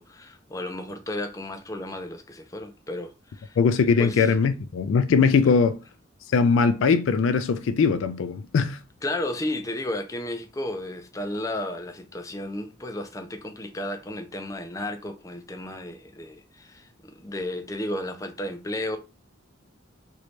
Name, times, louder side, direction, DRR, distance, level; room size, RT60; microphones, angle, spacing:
voice 1, 0.0-3.6 4.0-4.4 9.0-19.0, left 1 dB, 15° left, 0.4 m, -33 dB
voice 2, 3.6-5.8 6.3-8.8, left 5 dB, 90° left, 0.3 m, -21 dB
3.0 x 2.7 x 3.2 m
head